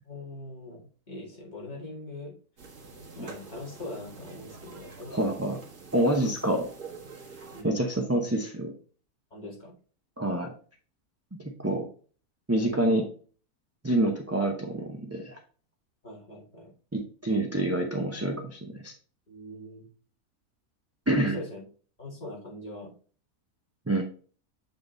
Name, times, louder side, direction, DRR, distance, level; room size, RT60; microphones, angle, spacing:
voice 1, 0.0-2.4 3.2-5.3 5.5-5.6 7.5-7.7 9.3-9.7 12.5-12.7 16.0-16.7 19.3-19.9 21.2-21.6 22.0-22.9, left 2 dB, 30° left, -5 dB, 2.4 m, -42 dB
sound 1, 2.6-7.6, right 4 dB, 50° right, 1.9 m, -46 dB
voice 2, 5.1-5.6 5.9-6.7 7.6-8.7 10.2-10.5 11.4-11.9 12.5-13.0 13.8-15.4 16.9-18.9 21.1-21.4 23.9-24.0, right 1 dB, 20° right, 2 dB, 0.5 m, -27 dB
7.7 x 3.8 x 3.9 m, 0.41 s
omnidirectional pair, 1.6 m